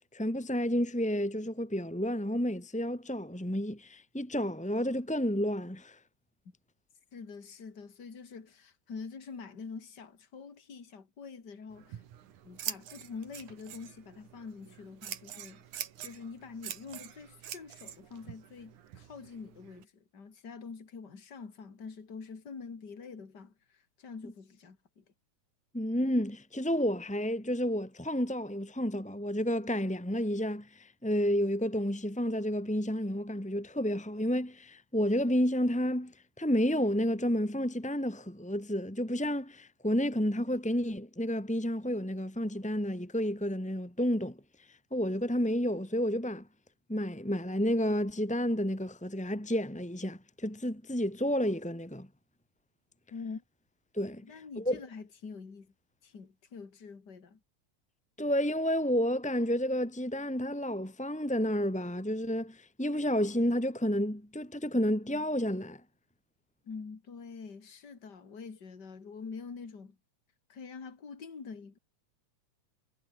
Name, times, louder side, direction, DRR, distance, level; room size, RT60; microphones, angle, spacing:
voice 1, 0.1-6.0 25.7-44.4 44.7-46.5 46.9-52.1 53.9-54.2 54.6-54.8 58.2-65.8, equal, 5° left, 1.1 m, -30 dB
voice 2, 7.1-12.0 12.4-15.7 16.0-25.0 53.1-53.4 54.2-55.7 56.0-57.4 66.6-70.0 70.5-71.8, left 5 dB, 35° left, 3.5 m, -45 dB
Scissors, 11.7-19.8, right 10 dB, 80° right, 3.3 m, -45 dB
omnidirectional pair, 3.4 m